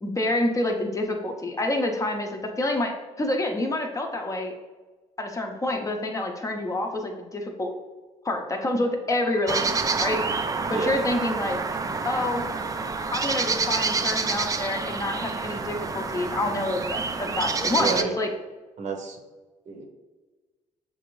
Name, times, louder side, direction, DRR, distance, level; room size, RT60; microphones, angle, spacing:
voice 1, 0.0-4.5 5.2-7.7 8.2-10.2 10.7-11.6 12.0-12.4 13.1-18.3, left 1 dB, 25° left, 3 dB, 0.6 m, -27 dB
sound 1, 9.5-18.0, right 4 dB, 25° right, 0.3 m, -28 dB
voice 2, 17.7-18.1 18.8-19.2 19.7-19.9, right 5 dB, 60° right, 3 dB, 0.8 m, -30 dB
6.6 x 2.5 x 3.1 m, 1.3 s
cardioid pair, 85°, 14 cm